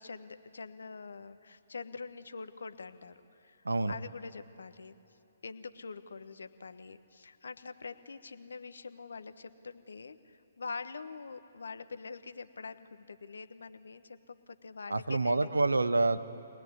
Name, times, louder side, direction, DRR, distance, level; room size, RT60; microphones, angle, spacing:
voice 1, 0.0-5.0 5.4-15.5, left 4 dB, 70° left, 11 dB, 1.1 m, -45 dB
voice 2, 14.9-16.3, right 3 dB, 85° right, 12 dB, 1.0 m, -27 dB
24.5 x 19.5 x 9.6 m, 2.7 s
figure-of-eight pair, 130°, 0 cm